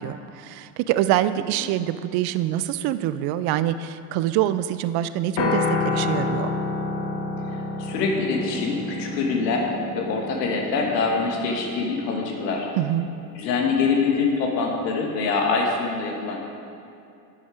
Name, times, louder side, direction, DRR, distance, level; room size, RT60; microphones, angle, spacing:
voice 1, 0.0-6.5 12.8-13.1, right 12 dB, 50° right, 13 dB, 0.6 m, -25 dB
Piano, 5.4-13.6, left 3 dB, 60° left, 1.2 m, -30 dB
voice 2, 7.5-9.7 9.9-12.7 13.3-16.4, left 4 dB, 80° left, 0 dB, 1.5 m, -24 dB
9.8 x 7.2 x 4.9 m, 2.6 s
hypercardioid pair, 85°, 48 cm